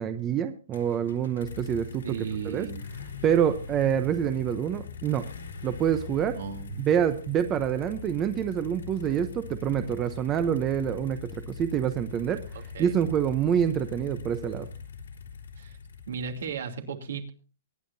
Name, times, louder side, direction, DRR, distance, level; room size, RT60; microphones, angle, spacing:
voice 1, 0.0-2.7 3.2-5.3 5.6-6.4 6.8-12.4 12.8-14.7, right 9 dB, 20° right, 10 dB, 0.8 m, -26 dB
sound 1, 0.7-16.7, left 5 dB, 90° left, 3.8 m, -41 dB
voice 2, 2.0-2.8 6.3-6.8 12.5-13.0 15.6-15.8 16.1-17.3, right 7 dB, 75° right, 5 dB, 2.8 m, -35 dB
24.0 x 10.0 x 2.7 m, 0.37 s
hypercardioid pair, 165°, 0 cm